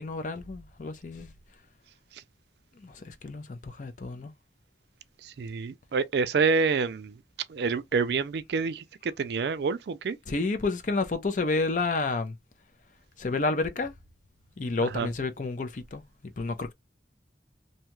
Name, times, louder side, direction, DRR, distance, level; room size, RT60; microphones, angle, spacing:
voice 1, 0.0-1.3 2.8-4.3 10.3-12.3 13.2-13.9 14.6-16.1 16.4-16.7, left 3 dB, 45° left, 0.5 m, -30 dB
voice 2, 5.2-7.2 7.5-10.2 14.8-15.1, right 5 dB, 65° right, 0.4 m, -28 dB
2.7 x 2.3 x 2.9 m
head